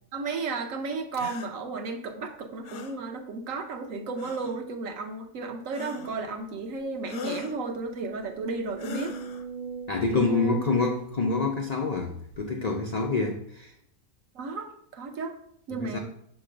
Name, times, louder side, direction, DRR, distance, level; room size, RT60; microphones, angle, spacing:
voice 1, 0.1-9.2 10.2-10.6 14.3-15.3 15.7-16.0, right 3 dB, 65° right, 1.1 m, -33 dB
sound 1, 1.1-1.5 2.6-3.0 4.2-4.6 5.7-6.3 7.1-7.6 8.8-9.4, left 6 dB, 65° left, 0.8 m, -40 dB
sound 2, 6.3-6.4 6.8-6.9 7.4-11.7 12.3-12.4, right 5 dB, 40° right, 0.6 m, -43 dB
voice 2, 9.9-13.7 15.8-16.0, left 3 dB, 85° left, 0.3 m, -27 dB
6.6 x 3.0 x 4.9 m
omnidirectional pair, 1.5 m